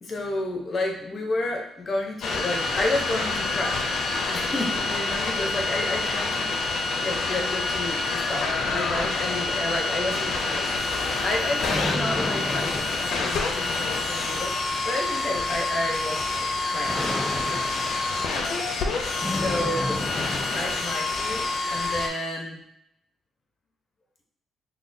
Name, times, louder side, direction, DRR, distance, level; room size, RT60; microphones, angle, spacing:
voice 1, 0.0-3.9 4.3-10.7 11.2-14.5 14.8-16.3 16.7-17.0 17.4-17.6 19.2-20.0 20.5-22.6, left 2 dB, 40° left, 1 dB, 0.8 m, -31 dB
sound 1, 2.2-22.1, left 3 dB, 70° left, 0.5 m, -27 dB
sound 2, 10.5-20.9, left 1 dB, 15° left, 0.5 m, -34 dB
5.6 x 2.2 x 2.6 m, 0.78 s
cardioid pair, 90°, 0 cm